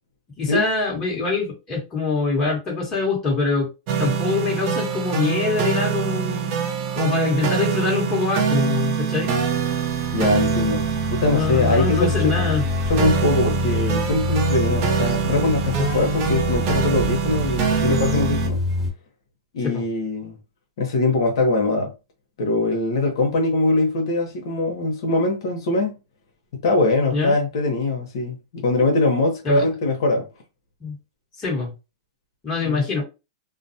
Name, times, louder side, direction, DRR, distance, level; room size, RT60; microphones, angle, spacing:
voice 1, 0.4-3.7 4.0-6.6 6.9-9.3 11.3-12.6 19.6-19.8 27.1-27.4 29.4-29.6 30.8-31.0 31.4-31.7 32.4-33.0, left 4 dB, 20° left, 1.3 m, -24 dB
sound 1, 3.9-18.5, right 7 dB, 40° right, 0.6 m, -24 dB
sound 2, 9.2-18.9, left 3 dB, 10° right, 1.0 m, -27 dB
voice 2, 10.1-12.5 12.9-18.6 19.5-20.4 20.8-21.9 22.4-26.0 26.5-30.3 32.6-32.8, left 2 dB, 70° left, 0.8 m, -22 dB
2.4 x 2.0 x 2.7 m
supercardioid pair, 150°, 3 cm